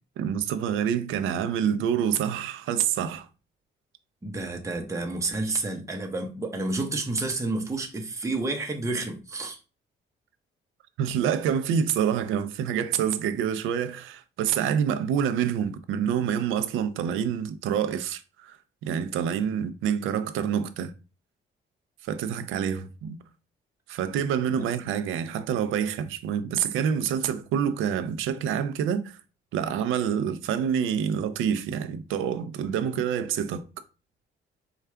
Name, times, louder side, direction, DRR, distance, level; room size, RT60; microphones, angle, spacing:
voice 1, 0.2-3.3 11.0-20.9 22.0-23.2 23.9-29.2 29.5-33.6, right 8 dB, 90° right, 0.5 m, -27 dB
voice 2, 4.2-9.6 24.6-24.7, right 2 dB, 15° right, 0.8 m, -30 dB
4.6 x 2.3 x 3.3 m
cardioid pair, 90°, 20 cm